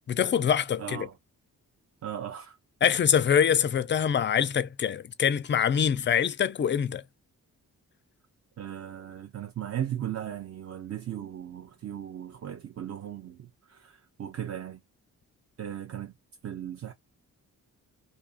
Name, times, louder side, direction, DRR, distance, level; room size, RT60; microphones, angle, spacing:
voice 1, 0.1-1.1 2.8-7.0, left 8 dB, 30° left, 0.4 m, -24 dB
voice 2, 0.8-1.1 2.0-2.6 8.6-14.8 15.6-16.1 16.4-16.9, right 10 dB, 35° right, 0.5 m, -37 dB
2.4 x 2.4 x 2.4 m
supercardioid pair, 40°, 42 cm